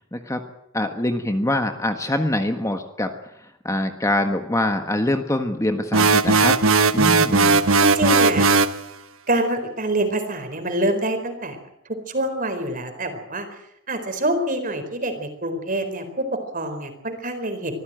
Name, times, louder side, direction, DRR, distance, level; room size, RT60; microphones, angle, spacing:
voice 1, 0.1-0.4 0.7-3.1 3.4-6.5 6.9-7.6, left 1 dB, 15° left, 6 dB, 1.4 m, -24 dB
sound 1, 5.9-8.8, right 3 dB, 80° right, 1.3 m, -17 dB
voice 2, 7.8-8.5 9.3-11.6 12.1-13.5 13.9-17.8, right 1 dB, 40° right, 7 dB, 4.5 m, -26 dB
25.0 x 15.5 x 9.1 m, 0.77 s
head